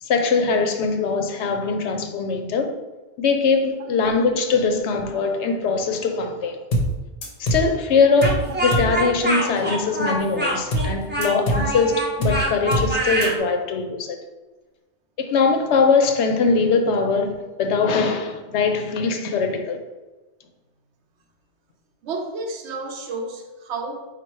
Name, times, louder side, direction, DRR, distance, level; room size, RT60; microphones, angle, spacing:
voice 1, 0.0-2.7 3.2-6.6 7.4-14.2 15.2-19.8, left 4 dB, 80° left, 0.9 m, -21 dB
sound 1, 6.7-7.0 7.2-7.7 8.2-8.5 8.7-9.0 10.7-11.0 11.2-11.7 12.2-12.5 12.7-13.0 13.2-13.3, right 1 dB, 45° left, 0.8 m, -23 dB
Speech, 8.2-13.4, right 1 dB, 10° right, 0.5 m, -25 dB
voice 2, 22.0-24.1, right 3 dB, 75° right, 0.9 m, -32 dB
4.3 x 2.3 x 4.5 m
omnidirectional pair, 1.2 m